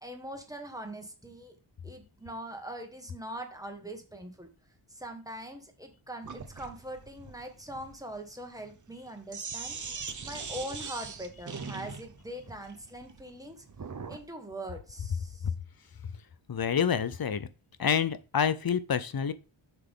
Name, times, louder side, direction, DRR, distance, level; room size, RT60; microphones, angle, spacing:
voice 1, 0.0-1.6 1.8-4.5 4.9-13.7 14.1-15.5, right 1 dB, 5° right, 1.5 m, -42 dB
Sink (filling or washing), 6.2-14.3, right 5 dB, 35° right, 0.8 m, -41 dB
voice 2, 16.5-17.5 17.8-19.3, left 7 dB, 45° left, 0.7 m, -27 dB
6.9 x 6.0 x 3.7 m
wide cardioid pair, 80°, 50 cm